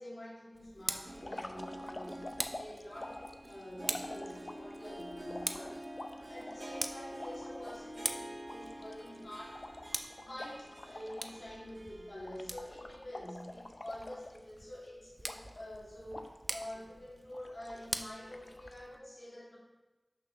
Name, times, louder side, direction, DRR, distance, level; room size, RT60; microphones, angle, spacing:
voice 1, 0.0-3.2 3.5-9.7 10.2-19.6, left 1 dB, 85° left, -6 dB, 2.8 m, -47 dB
Tick, 0.5-19.0, right 1 dB, 45° right, 0.6 m, -45 dB
Harp, 0.8-12.9 13.3-13.4 14.2-14.3, equal, 70° right, 1.0 m, -48 dB
sound 1, 1.2-4.8 5.3-7.8 8.2-8.3 8.5-11.4 11.7-11.9 12.2-14.7 15.2-15.8 16.1-16.8 17.3-17.9 18.3-18.8, left 2 dB, 65° left, 0.6 m, -47 dB
6.5 x 5.7 x 5.6 m, 1.2 s
wide cardioid pair, 45°, 0 cm